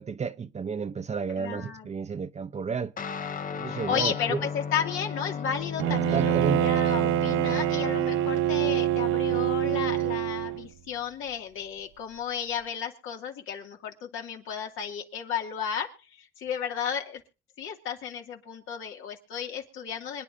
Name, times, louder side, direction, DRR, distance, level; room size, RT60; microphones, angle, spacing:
voice 1, 0.0-2.9 3.5-4.4 6.1-6.6, right 5 dB, 35° right, 0.8 m, -31 dB
voice 2, 1.4-1.9 3.7-17.2 17.6-20.2, left 8 dB, 85° left, 2.5 m, -33 dB
Guitar, 3.0-10.7, left 6 dB, 45° left, 0.8 m, -36 dB
Bowed string instrument, 5.8-10.7, right 14 dB, 85° right, 0.7 m, -25 dB
26.0 x 9.7 x 2.7 m
cardioid pair, 90°, 20 cm